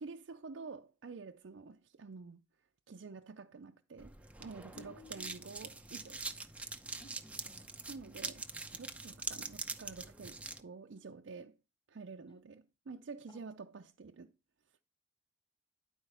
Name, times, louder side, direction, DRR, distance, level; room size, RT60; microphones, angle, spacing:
voice 1, 0.0-2.4 2.9-6.2 7.9-11.6 11.9-14.3, right 4 dB, 80° right, 0.5 m, -49 dB
sound 1, 4.0-10.6, right 3 dB, 5° right, 0.7 m, -44 dB
voice 2, 4.7-5.5 7.0-7.7 13.3-13.4, left 2 dB, 25° left, 0.8 m, -57 dB
11.0 x 4.4 x 5.6 m
head